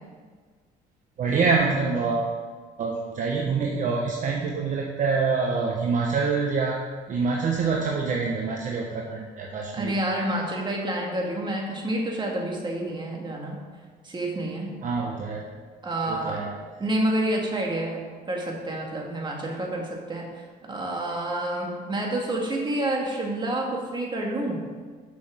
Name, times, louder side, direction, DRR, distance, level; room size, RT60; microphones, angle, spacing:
voice 1, 1.2-2.4 2.8-6.8 7.1-9.9 14.8-15.5 16.1-16.5, right 4 dB, 50° right, -1 dB, 1.1 m, -26 dB
voice 2, 9.7-13.6 14.0-14.7 15.8-16.4 16.8-24.6, right 1 dB, 25° right, -1 dB, 2.1 m, -29 dB
7.3 x 6.2 x 6.3 m, 1.5 s
cardioid pair, 110°, 17 cm